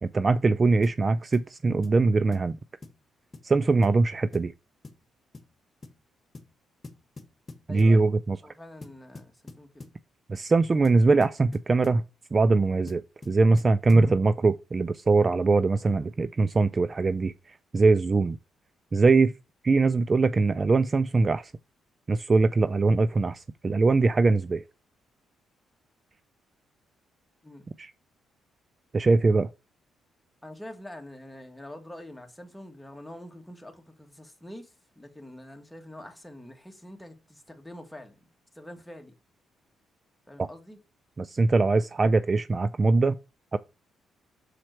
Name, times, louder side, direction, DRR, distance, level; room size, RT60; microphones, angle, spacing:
voice 1, 0.0-2.6 3.4-4.5 7.7-8.4 10.3-12.0 12.3-17.3 17.7-18.4 18.9-19.3 19.6-21.5 22.1-24.6 27.8-27.9 28.9-29.5 40.4-40.5 41.2-43.2 43.5-43.6, right 3 dB, 30° right, 0.4 m, -22 dB
sound 1, 0.8-1.0 1.3-1.5 1.8-2.0 2.3-2.5 2.8-3.0 3.3-3.5 3.8-4.0 4.3-4.5 4.8-5.1 5.3-5.5 5.8-6.0 6.3-6.5 6.8-8.0 8.8-10.0 10.8-12.0 12.9-14.1, left 3 dB, 30° left, 1.4 m, -46 dB
voice 2, 7.7-8.1 8.4-9.9 27.4-27.7 30.4-38.3 38.5-39.1 40.3-40.8, left 1 dB, 5° left, 1.7 m, -45 dB
6.6 x 4.3 x 4.4 m
cardioid pair, 90°, 0 cm